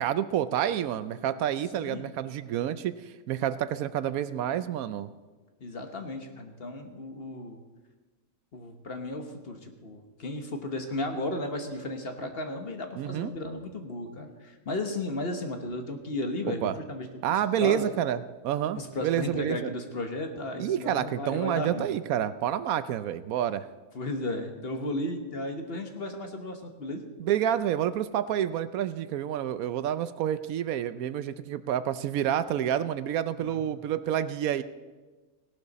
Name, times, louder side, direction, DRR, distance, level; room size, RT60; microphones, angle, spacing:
voice 1, 0.0-5.1 13.0-13.3 16.5-16.7 17.2-19.7 20.6-23.6 27.2-34.6, right 10 dB, 75° right, 14 dB, 1.0 m, -29 dB
voice 2, 1.7-2.1 5.6-7.6 8.5-17.9 18.7-21.9 23.9-27.1 33.4-33.6, left 2 dB, 45° left, 5 dB, 1.3 m, -35 dB
17.5 x 12.0 x 4.1 m, 1.3 s
omnidirectional pair, 1.6 m